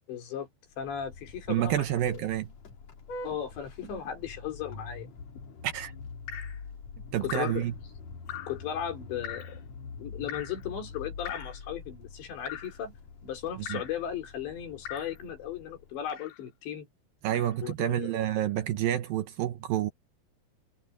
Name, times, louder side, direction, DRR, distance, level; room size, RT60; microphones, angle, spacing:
voice 1, 0.1-0.5 0.8-2.2 3.2-5.1 7.2-7.7 8.5-9.6 10.0-12.9 13.2-16.9 17.6-18.1, left 9 dB, 90° left, 6.3 m, -36 dB
Vehicle horn car horn honking, 0.7-16.1, left 4 dB, 45° left, 3.2 m, -45 dB
voice 2, 1.5-2.5 5.6-5.9 7.1-7.7 13.7-13.8 17.2-19.9, right 12 dB, 75° right, 2.3 m, -29 dB
Drip, 6.3-6.6 7.3-7.6 8.3-8.6 9.2-9.6 10.3-10.6 11.2-11.6 12.5-12.8 13.7-14.0 14.8-15.2 16.1-16.4 17.3-17.5, left 10 dB, 70° left, 4.5 m, -40 dB
omnidirectional pair, 4.9 m